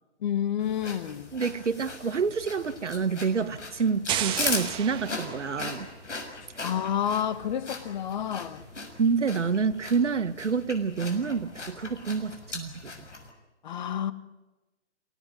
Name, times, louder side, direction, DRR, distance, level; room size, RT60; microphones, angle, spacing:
voice 1, 0.2-1.3 6.6-8.6 13.6-14.1, left 9 dB, 40° left, 1.6 m, -29 dB
sound 1, 0.6-13.3, left 3 dB, 85° left, 6.7 m, -39 dB
voice 2, 1.3-5.9 9.0-13.1, right 5 dB, 80° right, 1.8 m, -28 dB
sound 2, 4.1-5.9, right 11 dB, 15° right, 1.5 m, -33 dB
27.5 x 18.0 x 9.5 m
hypercardioid pair, 145°, 35 cm